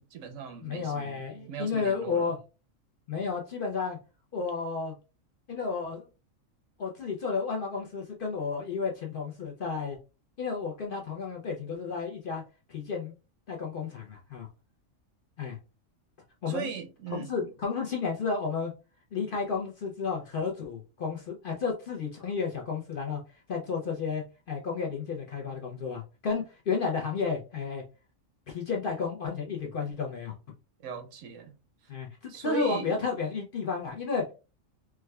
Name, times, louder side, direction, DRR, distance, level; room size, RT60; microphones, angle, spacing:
voice 1, 0.0-2.3 16.5-17.5 30.8-31.5 32.3-32.9, right 7 dB, 75° right, 0.9 m, -38 dB
voice 2, 0.6-2.4 3.1-4.0 4.3-4.9 5.5-6.1 6.8-10.0 10.4-12.4 12.7-13.1 13.5-14.5 15.4-15.6 16.4-16.7 17.1-18.7 19.1-23.2 23.5-27.8 28.5-30.3 31.9-34.2, left 5 dB, 60° left, 0.6 m, -32 dB
4.6 x 2.1 x 2.2 m
omnidirectional pair, 1.4 m